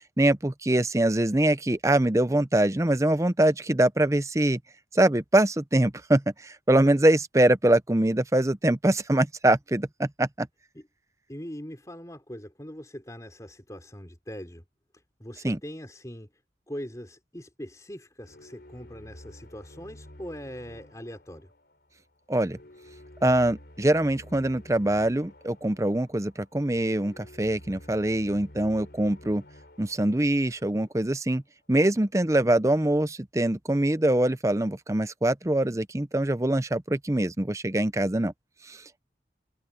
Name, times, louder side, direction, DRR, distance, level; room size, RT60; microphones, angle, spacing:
voice 1, 0.2-4.6 4.9-10.5 15.4-15.6 22.3-22.6 23.2-29.4 29.8-31.4 31.7-38.3 38.7-38.8, right 1 dB, 15° right, 0.6 m, -23 dB
voice 2, 11.3-14.6 14.9-16.3 16.7-21.5 32.4-32.5, equal, 20° left, 3.7 m, -41 dB
sound 1, 18.2-31.3, left 1 dB, 60° left, 3.8 m, -51 dB
head